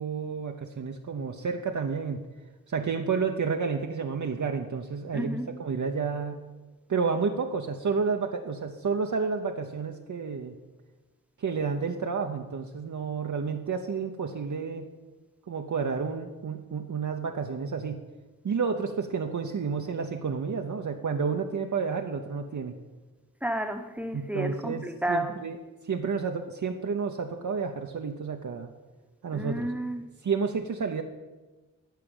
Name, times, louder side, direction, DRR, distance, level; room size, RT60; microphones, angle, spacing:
voice 1, 0.0-2.2 2.7-6.4 6.9-10.5 11.4-14.9 15.5-18.0 18.4-22.7 24.1-25.6 25.8-28.7 29.2-29.7 30.2-31.0, right 5 dB, 60° right, 3 dB, 0.8 m, -30 dB
voice 2, 5.1-5.5 23.4-25.4 29.3-30.0, right 1 dB, 5° right, 6 dB, 1.0 m, -31 dB
14.0 x 5.0 x 8.8 m, 1.2 s
wide cardioid pair, 105°, 34 cm